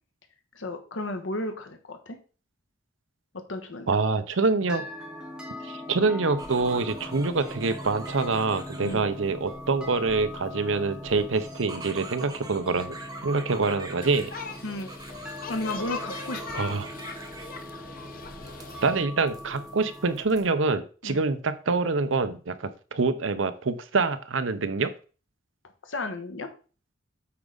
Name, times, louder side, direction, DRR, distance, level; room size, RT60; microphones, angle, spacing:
voice 1, 0.5-2.2 3.5-3.9 8.8-9.0 14.6-14.9 15.5-16.7 21.0-21.2 25.8-26.5, left 2 dB, 80° left, 7 dB, 1.3 m, -33 dB
voice 2, 3.9-4.9 5.6-13.0 13.2-14.3 16.6-16.9 18.8-24.9, right 4 dB, 80° right, 11 dB, 0.8 m, -26 dB
sound 1, 4.7-20.1, left 1 dB, 5° right, 1.2 m, -41 dB
sound 2, 6.4-20.5, right 2 dB, 20° right, 1.1 m, -45 dB
sound 3, 14.0-19.1, left 5 dB, 45° left, 0.7 m, -40 dB
8.5 x 4.9 x 4.0 m, 0.37 s
head